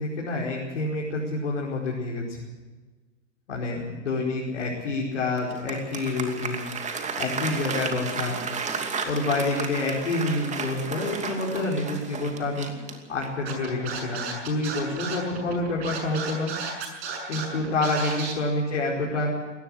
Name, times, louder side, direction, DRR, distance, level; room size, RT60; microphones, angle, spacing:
voice 1, 0.0-2.4 3.5-6.7 7.1-8.4 9.1-12.7 13.1-16.5 17.3-19.3, left 2 dB, 70° left, -3 dB, 5.1 m, -28 dB
Applause, 5.4-13.5, right 5 dB, 20° right, 2.7 m, -33 dB
Scratching (performance technique), 13.5-18.3, right 5 dB, 60° right, 6.8 m, -33 dB
22.0 x 18.5 x 6.6 m, 1.3 s
figure-of-eight pair, 100°, 36 cm